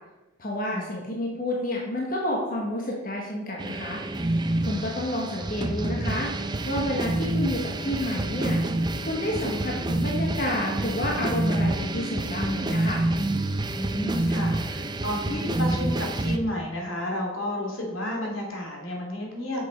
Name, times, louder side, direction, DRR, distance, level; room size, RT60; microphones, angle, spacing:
voice 1, 0.4-4.0 4.6-6.3 6.6-8.6 9.1-13.0, left 1 dB, 45° left, -1 dB, 1.3 m, -29 dB
sound 1, 3.6-16.4, right 1 dB, 20° right, 0.5 m, -28 dB
voice 2, 13.7-19.6, left 1 dB, 85° left, -1 dB, 2.7 m, -31 dB
7.4 x 6.5 x 5.2 m, 1.1 s
head